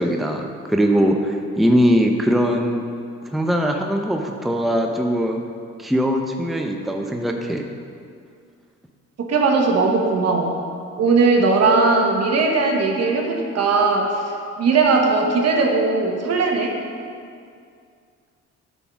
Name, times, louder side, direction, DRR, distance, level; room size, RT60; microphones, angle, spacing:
voice 1, 0.0-2.8 3.3-5.4 5.8-7.7, equal, ahead, 3 dB, 0.6 m, -20 dB
voice 2, 9.2-10.6 11.0-16.7, right 3 dB, 55° right, 1 dB, 1.3 m, -19 dB
9.9 x 3.9 x 5.9 m, 2.3 s
cardioid pair, 90°, 30 cm